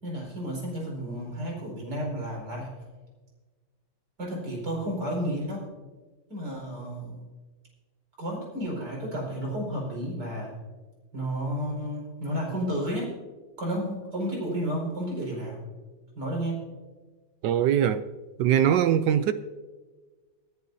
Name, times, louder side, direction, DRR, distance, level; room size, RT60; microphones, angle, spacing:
voice 1, 0.0-2.7 4.2-5.7 6.3-7.2 8.2-10.5 11.1-13.1 13.6-15.6 16.2-16.6, equal, 50° right, 5.6 m, -32 dB
voice 2, 17.4-18.0 18.4-19.3, right 10 dB, 75° right, 1.0 m, -22 dB
25.0 x 10.5 x 2.7 m
omnidirectional pair, 2.3 m